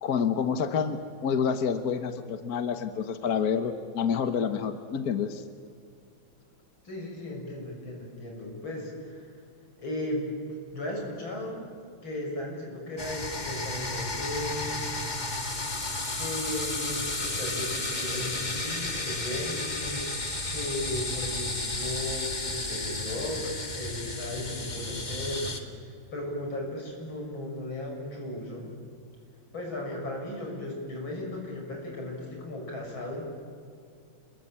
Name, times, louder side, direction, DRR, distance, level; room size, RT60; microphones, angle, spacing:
voice 1, 0.0-5.4, left 6 dB, 55° left, 9 dB, 1.5 m, -28 dB
voice 2, 6.8-9.3 9.8-10.3 10.7-11.7 12.0-14.8 16.2-20.0 20.5-28.7 29.5-33.3, left 1 dB, 80° left, 0 dB, 7.5 m, -36 dB
sound 1, 13.0-25.6, left 2 dB, 25° left, 1.9 m, -33 dB
28.0 x 22.0 x 8.9 m, 2.4 s
omnidirectional pair, 2.2 m